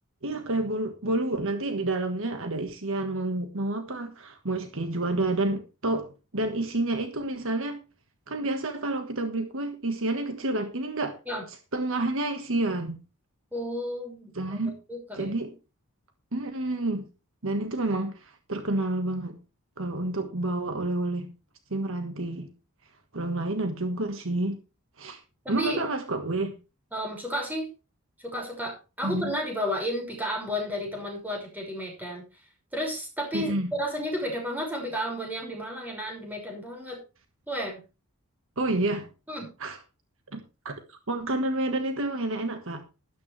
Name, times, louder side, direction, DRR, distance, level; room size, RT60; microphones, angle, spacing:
voice 1, 0.2-6.1 6.3-7.8 8.3-11.2 11.7-13.0 14.3-14.7 15.1-15.5 16.3-17.1 17.4-19.4 19.8-21.3 21.7-22.5 23.1-24.6 25.0-25.2 25.5-26.5 29.0-29.3 33.3-33.7 38.6-39.1 39.6-39.8 40.3-42.8, right 2 dB, 60° right, 6 dB, 1.6 m, -29 dB
voice 2, 13.5-15.3 25.4-25.8 26.9-27.7 28.2-32.2 32.7-37.0 37.5-37.8 39.3-39.5, equal, 10° right, 0 dB, 5.8 m, -32 dB
12.5 x 12.0 x 3.3 m, 0.30 s
head